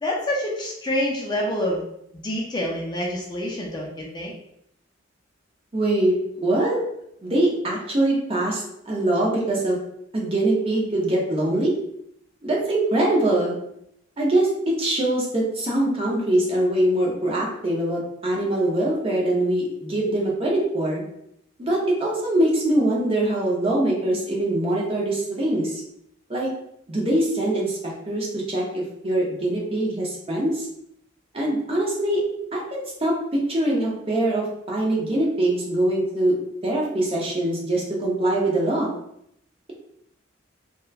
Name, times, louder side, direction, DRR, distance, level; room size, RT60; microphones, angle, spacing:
voice 1, 0.0-1.8 2.2-4.3, left 1 dB, 20° left, -2 dB, 0.4 m, -27 dB
voice 2, 5.7-6.1 6.4-6.8 7.2-9.8 10.1-11.7 12.4-13.6 14.2-21.0 21.6-25.7 26.3-26.5 26.9-30.5 31.3-32.2 32.5-33.1 33.5-36.3 36.6-38.9, right 1 dB, 30° right, -3 dB, 0.6 m, -23 dB
2.8 x 2.1 x 2.3 m, 0.76 s
head